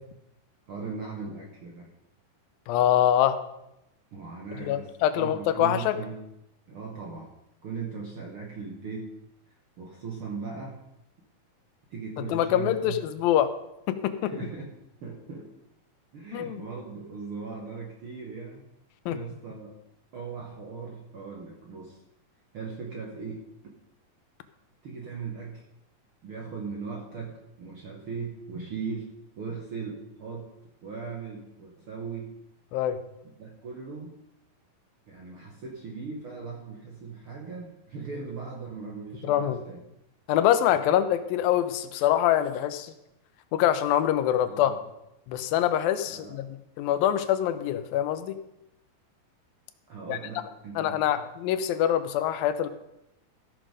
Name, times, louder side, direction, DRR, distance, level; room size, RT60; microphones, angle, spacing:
voice 1, 0.7-1.9 4.1-6.2 6.7-7.3 7.6-9.1 9.8-10.8 11.9-13.0 14.2-14.7 15.0-15.5 16.1-18.6 19.1-19.7 20.1-22.0 22.5-23.4 24.8-25.6 26.2-29.1 29.4-30.5 30.8-32.3 33.2-34.2 35.1-39.8 40.7-41.0 44.5-44.8 46.1-46.4 49.9-51.2, right 5 dB, 65° right, -1 dB, 1.4 m, -38 dB
voice 2, 2.7-3.4 4.7-6.0 12.3-13.5 13.9-14.3 16.3-16.6 19.1-19.2 32.7-33.0 39.2-39.6 40.3-42.9 43.5-44.7 45.3-46.5 46.8-48.4 50.1-50.2 50.8-52.7, left 11 dB, 90° left, 11 dB, 2.5 m, -24 dB
14.5 x 6.3 x 5.0 m, 0.86 s
omnidirectional pair, 4.1 m